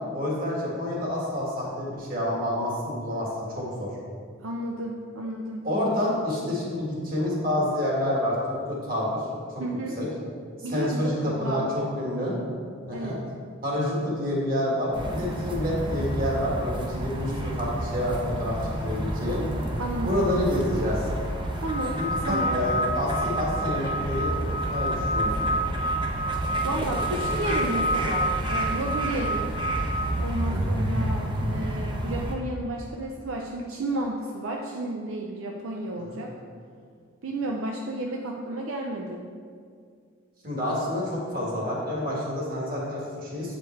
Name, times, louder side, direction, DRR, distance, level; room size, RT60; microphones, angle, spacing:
voice 1, 0.1-3.9 5.6-9.2 9.5-9.6 10.0-10.1 10.6-12.3 12.9-13.2 13.6-19.5 20.0-21.1 22.0-25.5 30.4-30.7 36.0-36.3 40.4-43.6, left 1 dB, 45° right, -4 dB, 2.0 m, -28 dB
voice 2, 4.4-5.7 9.6-10.0 10.6-11.9 12.9-13.2 19.8-20.3 21.6-22.0 22.2-22.6 26.6-29.5 30.2-36.3 37.2-39.2, right 1 dB, 75° right, 0 dB, 0.6 m, -32 dB
sound 1, 14.9-32.4, right 1 dB, 25° right, 0.7 m, -30 dB
sound 2, 21.7-30.2, right 1 dB, 40° left, 0.5 m, -29 dB
7.9 x 5.1 x 4.5 m, 2.1 s
head